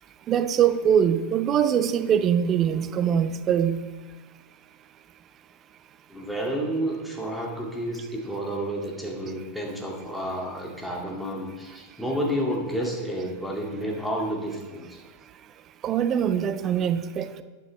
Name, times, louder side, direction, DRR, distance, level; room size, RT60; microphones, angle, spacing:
voice 1, 0.3-3.8 15.8-17.4, right 8 dB, 30° right, 12 dB, 0.6 m, -23 dB
voice 2, 6.1-15.0, equal, ahead, -2 dB, 2.1 m, -30 dB
11.0 x 9.2 x 3.1 m, 1.3 s
figure-of-eight pair, 90°, 0 cm